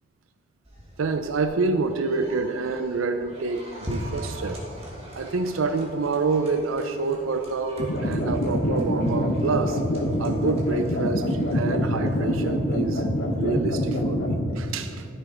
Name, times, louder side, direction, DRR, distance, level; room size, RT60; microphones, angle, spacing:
sound 1, 0.6-13.6, equal, 30° right, 1.8 m, -41 dB
voice 1, 1.0-4.6 5.1-9.8 10.2-13.1 13.4-15.1, right 4 dB, 90° right, 8 dB, 0.5 m, -27 dB
sound 2, 7.8-14.4, equal, 60° left, 1.1 m, -25 dB
12.0 x 6.7 x 5.0 m, 2.3 s
head